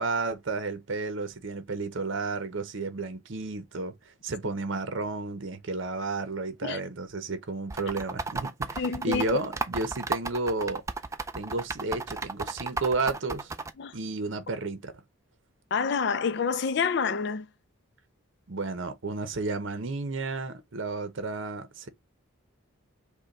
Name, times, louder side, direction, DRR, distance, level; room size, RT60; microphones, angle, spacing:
voice 1, 0.0-3.9 4.2-10.8 11.3-13.5 13.9-14.9 18.5-21.9, right 3 dB, 65° right, 0.8 m, -32 dB
sound 1, 7.7-13.7, right 4 dB, 15° right, 0.3 m, -33 dB
voice 2, 8.8-9.4 13.8-13.9 15.7-17.5, left 5 dB, 55° left, 0.4 m, -28 dB
5.5 x 2.3 x 3.9 m
head